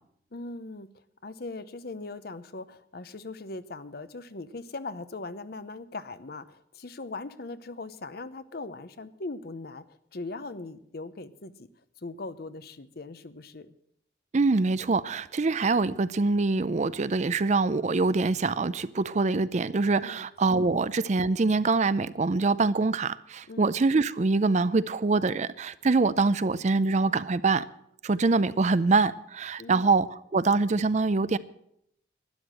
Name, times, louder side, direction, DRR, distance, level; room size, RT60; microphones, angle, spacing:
voice 1, 0.3-11.7 12.0-13.7 20.0-20.3 23.5-23.6 29.6-29.9, left 3 dB, 55° left, 0.8 m, -40 dB
voice 2, 14.3-27.7 28.0-31.4, right 3 dB, 40° right, 0.5 m, -24 dB
12.5 x 10.0 x 7.7 m
head